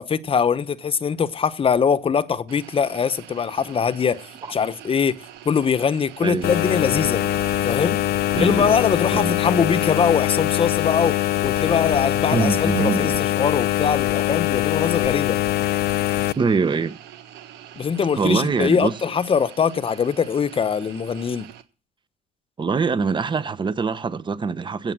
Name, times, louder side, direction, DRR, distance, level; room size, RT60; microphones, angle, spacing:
voice 1, 0.0-4.2 4.5-5.2 5.4-7.2 7.6-8.0 8.3-15.4 17.8-21.5, left 6 dB, 35° left, 1.0 m, -22 dB
sound 1, 2.5-21.6, right 10 dB, 90° right, 1.4 m, -44 dB
sound 2, 6.4-16.3, left 15 dB, 70° left, 0.6 m, -22 dB
voice 2, 8.3-8.7 9.1-9.3 12.3-13.2 16.3-17.0 18.2-19.0 22.6-24.9, right 5 dB, 30° right, 1.0 m, -23 dB
16.5 x 7.0 x 7.6 m
cardioid pair, 110°, 17 cm